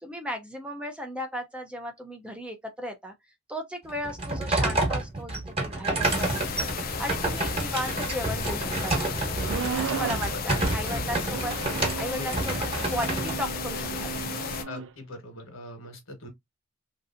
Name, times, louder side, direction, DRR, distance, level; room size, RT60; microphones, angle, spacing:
voice 1, 0.0-3.1 3.5-9.2 9.8-11.5 12.0-13.9 14.4-14.6, equal, 5° right, 0.5 m, -36 dB
sound 1, 3.9-14.1, right 2 dB, 30° right, 1.1 m, -29 dB
sound 2, 6.0-14.6, left 5 dB, 45° left, 0.5 m, -33 dB
sound 3, 9.4-10.3 11.2-14.9, right 7 dB, 65° right, 0.3 m, -35 dB
voice 2, 10.9-11.4 12.2-12.3 14.6-16.3, left 2 dB, 75° left, 1.3 m, -41 dB
3.1 x 2.7 x 2.5 m
head